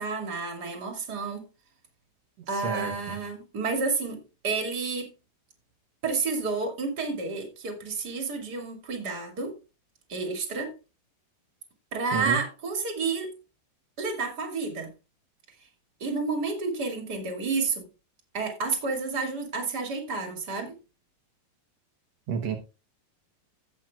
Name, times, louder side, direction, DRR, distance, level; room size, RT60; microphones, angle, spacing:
voice 1, 0.0-1.5 2.5-5.1 6.0-9.6 10.1-10.7 11.9-13.4 14.0-14.9 16.0-17.9 18.3-20.8, right 4 dB, 30° right, 2.4 m, -30 dB
voice 2, 2.5-3.2 12.1-12.4 22.3-22.6, right 7 dB, 70° right, 1.6 m, -31 dB
16.5 x 7.4 x 2.3 m
omnidirectional pair, 4.3 m